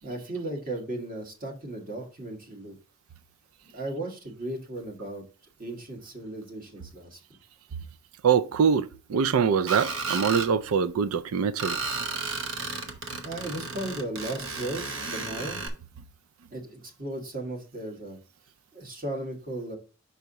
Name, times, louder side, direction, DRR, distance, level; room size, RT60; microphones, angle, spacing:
voice 1, 0.0-2.8 3.7-5.2 5.6-7.2 13.2-15.7 16.5-18.2 18.7-19.8, right 1 dB, 40° right, 1.6 m, -36 dB
voice 2, 8.2-11.8, right 6 dB, 75° right, 0.4 m, -24 dB
Screech, 9.7-10.5 11.6-15.7, right 4 dB, 60° right, 0.9 m, -33 dB
5.7 x 4.7 x 4.0 m
head